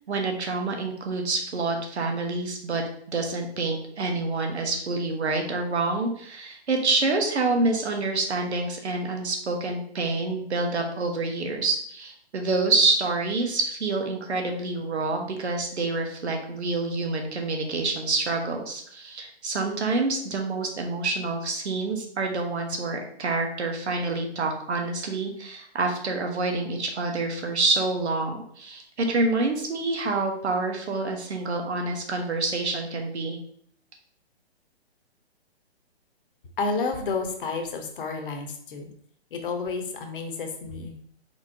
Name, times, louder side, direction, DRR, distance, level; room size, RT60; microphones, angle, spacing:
voice 1, 0.1-2.8 3.1-33.4, right 3 dB, 80° right, 3 dB, 1.2 m, -27 dB
voice 2, 36.6-38.9 39.3-41.0, left 4 dB, 50° left, 4 dB, 1.0 m, -30 dB
4.4 x 4.2 x 2.8 m, 0.65 s
hypercardioid pair, 140°, 33 cm